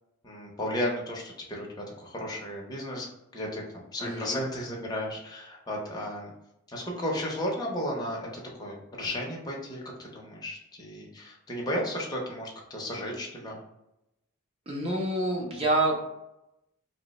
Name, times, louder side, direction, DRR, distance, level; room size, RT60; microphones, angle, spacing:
voice 1, 0.2-3.1 3.3-6.3 6.7-13.6, left 1 dB, 15° left, -2 dB, 0.6 m, -34 dB
voice 2, 4.0-4.4 14.7-16.0, right 2 dB, 25° right, -1 dB, 0.6 m, -27 dB
2.8 x 2.0 x 4.0 m, 0.88 s
head